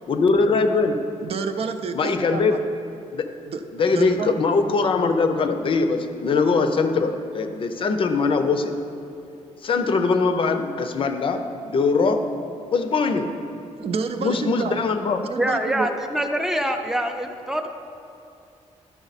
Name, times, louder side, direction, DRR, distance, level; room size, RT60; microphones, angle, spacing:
voice 1, 0.1-1.0 1.9-2.6 3.1-3.3 3.7-8.7 9.6-12.2 12.7-13.3 14.2-15.2, left 4 dB, 45° left, 7 dB, 0.5 m, -21 dB
voice 2, 1.2-2.6 3.4-4.4 13.8-14.8 15.2-15.9, right 5 dB, 55° right, 7 dB, 0.5 m, -29 dB
voice 3, 15.3-17.7, right 1 dB, 5° right, 5 dB, 0.5 m, -25 dB
11.5 x 5.9 x 4.1 m, 2.5 s
wide cardioid pair, 150°, 12 cm